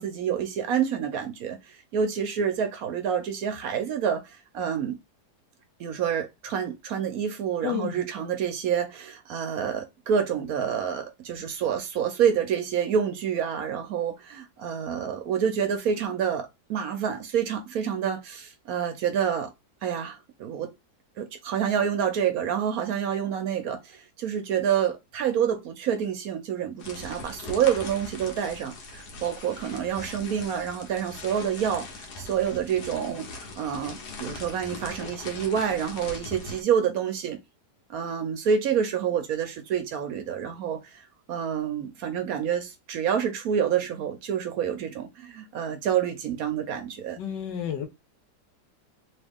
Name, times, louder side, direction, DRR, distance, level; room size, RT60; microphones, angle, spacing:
voice 1, 0.0-5.0 5.8-19.5 19.8-20.7 21.2-37.4 37.9-47.2, right 8 dB, 65° right, 1.0 m, -28 dB
voice 2, 7.6-8.0 47.2-47.9, left 9 dB, 90° left, 1.5 m, -30 dB
sound 1, 26.8-36.6, left 2 dB, 70° left, 1.5 m, -40 dB
3.2 x 2.9 x 3.5 m
omnidirectional pair, 1.8 m